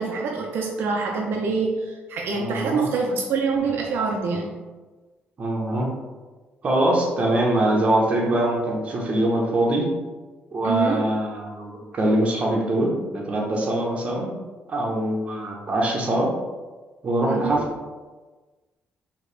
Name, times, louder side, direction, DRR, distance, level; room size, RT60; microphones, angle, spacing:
voice 1, 0.0-4.5 10.6-11.0 17.3-17.6, right 5 dB, 70° right, 0 dB, 0.5 m, -25 dB
voice 2, 2.3-2.8 5.4-5.9 6.6-9.9 10.5-14.3 14.7-16.3 17.0-17.6, right 1 dB, 30° right, -2 dB, 0.9 m, -23 dB
4.8 x 2.9 x 3.3 m, 1.3 s
cardioid pair, 160°, 4 cm